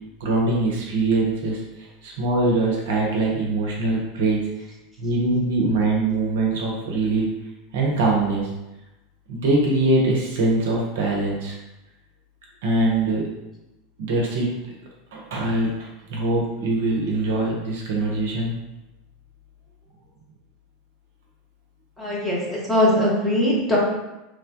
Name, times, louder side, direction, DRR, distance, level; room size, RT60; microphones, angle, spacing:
voice 1, 0.2-4.4 5.0-7.3 7.7-8.5 9.3-11.6 12.6-13.2 14.0-14.5 15.1-18.5, right 2 dB, 60° right, -2 dB, 0.6 m, -23 dB
voice 2, 22.0-23.8, left 1 dB, 10° left, -6 dB, 1.0 m, -21 dB
3.0 x 2.2 x 2.6 m, 0.98 s
figure-of-eight pair, 80°, 0 cm